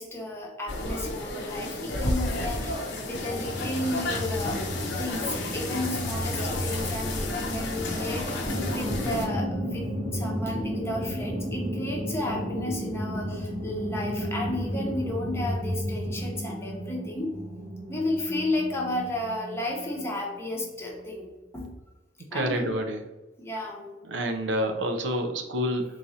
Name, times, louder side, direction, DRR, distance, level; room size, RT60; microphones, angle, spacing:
voice 1, 0.0-4.6 5.0-17.4 17.9-21.3 21.5-21.7 22.3-22.7 23.4-23.8, left 1 dB, 15° left, -1 dB, 0.8 m, -33 dB
sound 1, 0.7-9.3, left 2 dB, 70° left, 0.8 m, -32 dB
sound 2, 3.1-16.3, left 1 dB, 35° left, 0.4 m, -36 dB
sound 3, 8.5-21.0, equal, 40° right, 0.7 m, -34 dB
voice 2, 22.3-23.0 24.0-25.9, equal, 80° right, 5 dB, 0.5 m, -28 dB
3.9 x 3.0 x 2.6 m, 1.1 s
head